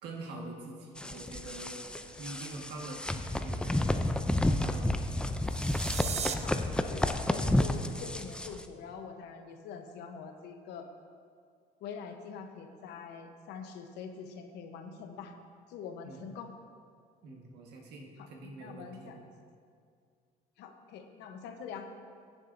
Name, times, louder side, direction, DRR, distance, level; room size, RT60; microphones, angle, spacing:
voice 1, 0.0-1.8 2.2-4.0 4.6-4.9 16.0-16.2 17.2-19.2, right 2 dB, 80° right, 0 dB, 1.6 m, -45 dB
sound 1, 1.0-8.6, left 1 dB, 5° left, 0.4 m, -31 dB
sound 2, 5.4-6.3, right 7 dB, 40° right, 0.6 m, -36 dB
voice 2, 6.9-10.9 11.8-15.3 15.7-16.5 18.2-19.2 20.6-21.9, left 6 dB, 85° left, 6 dB, 0.9 m, -44 dB
16.5 x 7.3 x 2.6 m, 2.2 s
cardioid pair, 110°, 17 cm